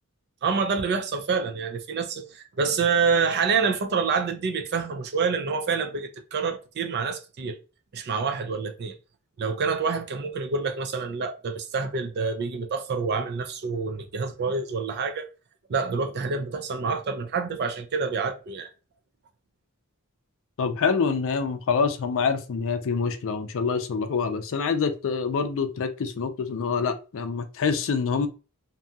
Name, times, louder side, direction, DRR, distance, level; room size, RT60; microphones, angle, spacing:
voice 1, 0.4-7.6 7.9-8.9 9.4-15.3 15.7-18.7, right 5 dB, 50° right, 0.4 m, -27 dB
voice 2, 20.6-28.3, left 5 dB, 60° left, 0.4 m, -26 dB
2.6 x 2.3 x 2.6 m
head